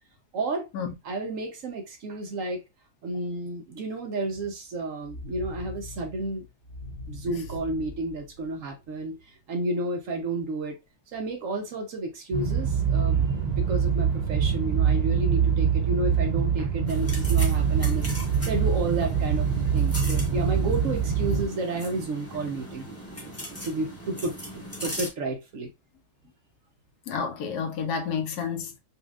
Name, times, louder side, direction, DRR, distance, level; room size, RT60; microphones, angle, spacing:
voice 1, 0.3-0.7 1.0-2.6 3.0-6.5 7.1-9.2 9.5-10.8 11.1-18.1 18.5-19.5 19.7-22.9 23.6-24.4 24.8-25.7, right 2 dB, 65° right, 0.9 m, -31 dB
sound 1, 5.0-9.1, left 2 dB, 25° right, 1.2 m, -42 dB
sound 2, 12.3-21.5, right 7 dB, 90° right, 0.3 m, -24 dB
sound 3, 16.9-25.1, equal, 10° left, 0.9 m, -39 dB
voice 2, 27.1-28.8, left 6 dB, 80° left, 1.3 m, -30 dB
4.2 x 2.3 x 2.3 m
omnidirectional pair, 1.7 m